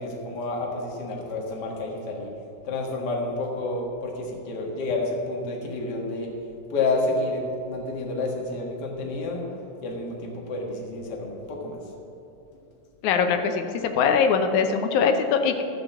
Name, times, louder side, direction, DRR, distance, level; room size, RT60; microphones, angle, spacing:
voice 1, 0.0-2.3 2.6-6.3 6.7-9.4 9.8-11.8, left 2 dB, 40° left, -1 dB, 1.7 m, -29 dB
voice 2, 13.0-15.6, left 6 dB, 75° left, 6 dB, 2.0 m, -22 dB
12.5 x 6.8 x 7.0 m, 2.7 s
omnidirectional pair, 3.8 m